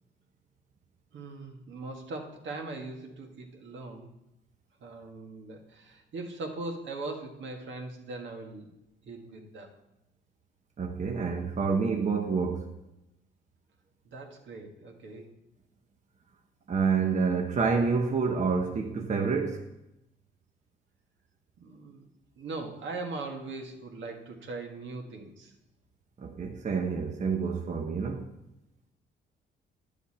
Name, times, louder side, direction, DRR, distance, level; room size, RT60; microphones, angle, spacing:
voice 1, 1.1-4.1 4.8-8.7 9.0-9.7 14.0-15.3 21.6-22.1 22.4-25.5, right 3 dB, 70° right, 1.8 m, -40 dB
voice 2, 10.8-12.6 16.7-19.6 26.2-28.3, right 5 dB, 35° right, 0.8 m, -28 dB
10.5 x 7.1 x 4.3 m
cardioid pair, 90°, 20 cm